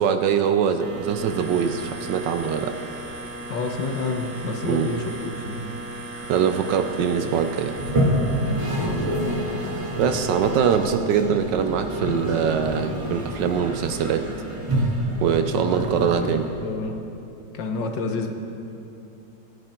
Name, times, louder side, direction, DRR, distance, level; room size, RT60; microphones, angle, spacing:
voice 1, 0.0-2.8 4.6-4.9 6.3-7.8 9.6-9.7 10.0-14.3 15.2-16.5, right 7 dB, 80° right, 8 dB, 1.4 m, -23 dB
sound 1, 0.8-10.6, right 2 dB, 45° right, 2.0 m, -37 dB
voice 2, 3.5-5.8 8.8-9.0 15.6-17.0 17.5-18.3, left 3 dB, 80° left, 4 dB, 1.9 m, -29 dB
Toilet flush, 7.7-16.8, equal, 20° right, 1.5 m, -27 dB
26.5 x 9.5 x 4.5 m, 2.8 s
omnidirectional pair, 1.9 m